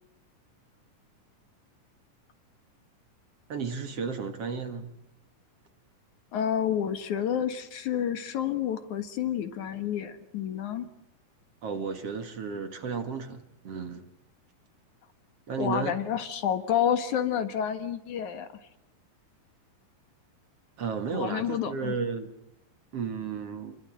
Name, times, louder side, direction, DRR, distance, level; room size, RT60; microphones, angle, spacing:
voice 1, 3.5-4.9 11.6-14.1 15.5-15.9 20.8-22.3 22.9-23.8, right 5 dB, 50° right, 8 dB, 2.7 m, -33 dB
voice 2, 6.3-10.9 15.6-18.5 21.1-21.9, left 9 dB, 65° left, 10 dB, 2.9 m, -29 dB
29.5 x 22.5 x 7.7 m, 0.84 s
omnidirectional pair, 3.9 m